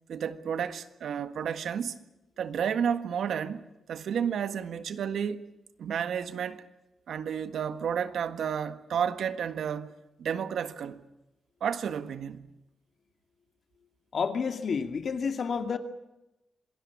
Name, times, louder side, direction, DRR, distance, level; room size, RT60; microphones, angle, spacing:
voice 1, 0.1-2.0 2.4-5.4 5.8-6.6 7.1-9.9 10.2-11.0 11.6-12.5, right 8 dB, 75° right, 1.7 m, -31 dB
voice 2, 14.1-15.8, left 5 dB, 50° left, 2.4 m, -30 dB
26.5 x 19.0 x 8.6 m
wide cardioid pair, 130°, 0 cm